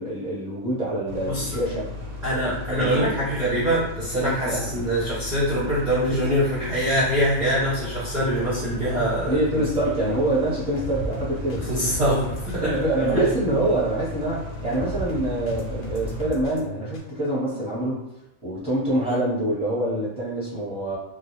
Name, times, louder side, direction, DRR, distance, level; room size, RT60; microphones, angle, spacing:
voice 1, 0.0-1.9 2.7-3.1 4.2-4.8 9.3-11.7 12.6-18.0 18.4-21.0, right 1 dB, 5° right, -8 dB, 0.8 m, -25 dB
sound 1, 1.1-16.3, left 2 dB, 90° right, 1.0 m, -36 dB
voice 2, 1.3-1.6 2.2-9.4 11.6-12.7 13.0-13.2 19.1-19.2, equal, 45° right, -10 dB, 0.7 m, -24 dB
sound 2, 6.8-17.0, right 2 dB, 65° left, 0.8 m, -37 dB
2.3 x 2.1 x 2.9 m, 0.88 s
omnidirectional pair, 1.3 m